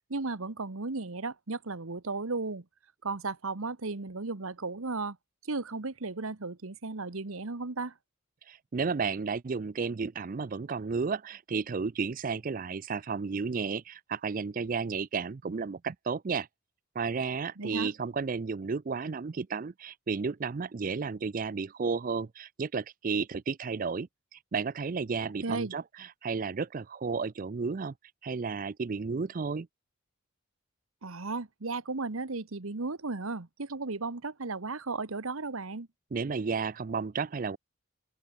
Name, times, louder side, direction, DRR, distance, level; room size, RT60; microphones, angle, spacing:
voice 1, 0.1-2.6 3.0-5.2 5.4-7.9 17.6-17.9 25.4-25.7 31.0-35.9, right 3 dB, 75° right, 1.3 m, -35 dB
voice 2, 8.5-16.5 17.0-27.9 28.2-29.7 36.1-37.6, right 5 dB, 40° right, 0.4 m, -33 dB
open air
head